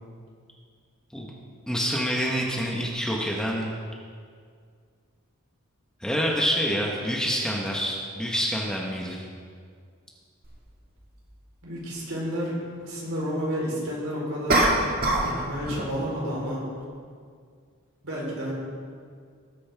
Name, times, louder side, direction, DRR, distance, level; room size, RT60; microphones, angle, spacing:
voice 1, 1.7-3.7 6.0-9.2, equal, 5° left, -2 dB, 1.2 m, -27 dB
sound 1, 10.4-10.5 14.5-15.4 15.6-16.0, right 1 dB, 40° right, 1.7 m, -22 dB
voice 2, 11.6-14.7 15.2-16.6 18.0-18.5, equal, 70° right, -4 dB, 3.9 m, -31 dB
19.0 x 9.5 x 3.5 m, 2.1 s
head